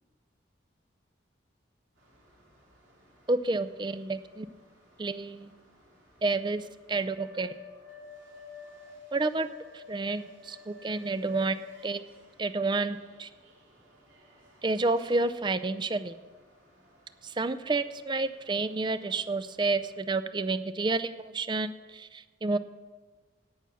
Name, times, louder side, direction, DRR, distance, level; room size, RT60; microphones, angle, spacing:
sound 1, 2.0-20.0, left 3 dB, 90° right, 3.3 m, -54 dB
voice 1, 3.3-4.5 5.0-5.5 6.2-7.6 9.1-9.5 9.7-12.0 12.4-13.3 14.6-16.2 17.2-22.6, right 3 dB, 25° right, 13 dB, 0.4 m, -30 dB
17.5 x 6.2 x 6.9 m, 1.4 s
head